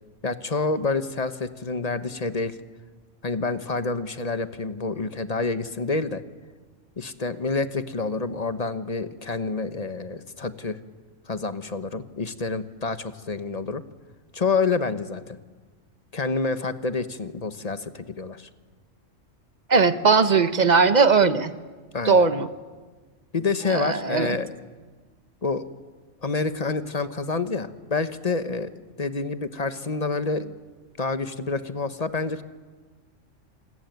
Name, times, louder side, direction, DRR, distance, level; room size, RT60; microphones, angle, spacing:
voice 1, 0.2-2.5 3.2-6.2 7.0-10.8 11.3-13.8 14.3-15.4 16.1-18.5 21.9-22.2 23.3-24.5 25.4-25.7 26.2-28.7 29.0-30.5 31.0-32.4, left 4 dB, 35° left, 11 dB, 1.1 m, -28 dB
voice 2, 19.7-21.5 22.0-22.5 23.7-24.4, right 5 dB, 35° right, 11 dB, 1.1 m, -19 dB
27.5 x 20.0 x 9.3 m, 1.4 s
omnidirectional pair, 1.3 m